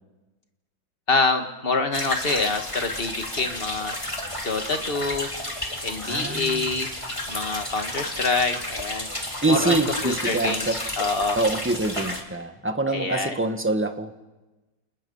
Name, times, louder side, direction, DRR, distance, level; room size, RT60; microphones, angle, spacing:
voice 1, 1.1-3.9 4.4-5.3 5.8-6.9 7.3-9.1 9.5-11.4 12.9-13.4, left 3 dB, 30° left, 6 dB, 1.9 m, -26 dB
sound 1, 1.9-12.2, left 1 dB, 15° left, 2.7 m, -32 dB
voice 2, 6.0-6.8 9.4-10.8 11.4-14.3, right 2 dB, 5° right, 6 dB, 1.2 m, -25 dB
29.0 x 27.0 x 5.6 m, 1.1 s
omnidirectional pair, 2.0 m